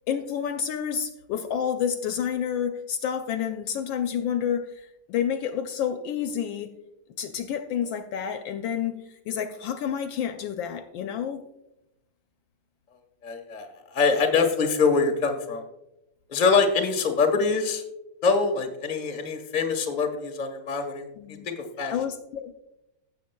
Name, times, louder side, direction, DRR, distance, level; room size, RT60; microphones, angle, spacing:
voice 1, 0.1-6.7 7.2-11.4 21.2-21.5 21.9-22.5, left 8 dB, 75° left, 7 dB, 1.2 m, -29 dB
voice 2, 13.2-15.6 16.3-17.8 18.2-21.1 21.4-21.9, left 4 dB, 30° left, 4 dB, 0.8 m, -24 dB
15.5 x 7.2 x 2.2 m, 0.92 s
omnidirectional pair, 2.3 m